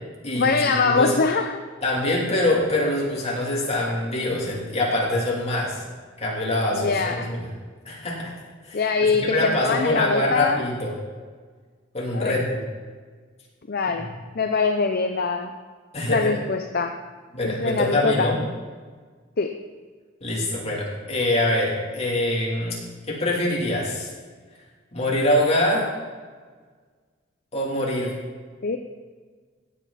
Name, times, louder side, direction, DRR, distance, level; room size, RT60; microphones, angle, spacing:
voice 1, 0.3-1.6 6.7-7.3 8.7-10.6 12.1-12.4 13.7-14.1 14.3-15.5 16.1-17.0 17.4-18.3 19.4-19.5 28.6-28.8, left 4 dB, 50° left, 6 dB, 0.6 m, -23 dB
voice 2, 1.8-5.8 6.2-7.4 7.8-8.3 8.6-10.9 11.9-12.6 15.9-16.3 17.3-18.4 20.2-22.8 23.1-24.1 24.9-25.9 27.5-28.1, left 1 dB, 35° left, -4 dB, 3.1 m, -24 dB
16.0 x 8.6 x 4.2 m, 1.5 s
head